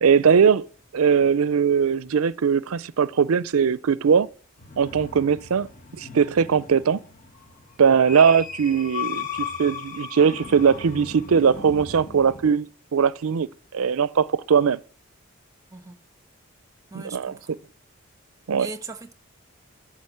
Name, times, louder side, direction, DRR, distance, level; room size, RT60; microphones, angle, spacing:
voice 1, 0.0-0.6 0.9-4.3 4.8-5.7 6.0-7.0 7.8-13.5 13.7-14.8 16.9-17.4 18.5-18.7, right 6 dB, 80° right, 0.5 m, -20 dB
sound 1, 4.6-12.5, left 6 dB, 35° left, 1.2 m, -37 dB
voice 2, 16.9-17.6 18.6-19.1, right 3 dB, 15° right, 1.2 m, -39 dB
13.5 x 6.1 x 8.5 m
head